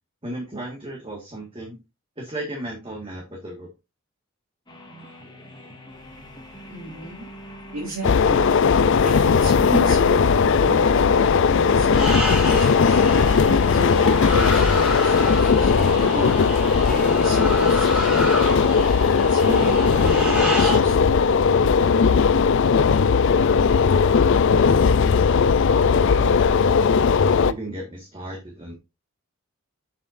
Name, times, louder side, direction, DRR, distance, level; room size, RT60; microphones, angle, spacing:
voice 1, 0.2-1.8 2.2-3.7 24.6-25.2 26.1-26.4 27.2-28.7, right 1 dB, 25° right, -1 dB, 1.8 m, -35 dB
sound 1, 4.7-13.6, right 1 dB, 20° left, 2.0 m, -42 dB
voice 2, 6.7-7.3 7.7-8.6 9.0-13.0 13.4-16.4 16.8-21.2, right 1 dB, 65° right, -3 dB, 2.8 m, -33 dB
sound 2, 8.0-27.5, left 5 dB, 55° left, 0.4 m, -18 dB
sound 3, 11.9-20.8, equal, 5° right, 3.3 m, -29 dB
7.6 x 7.1 x 2.6 m, 0.25 s
head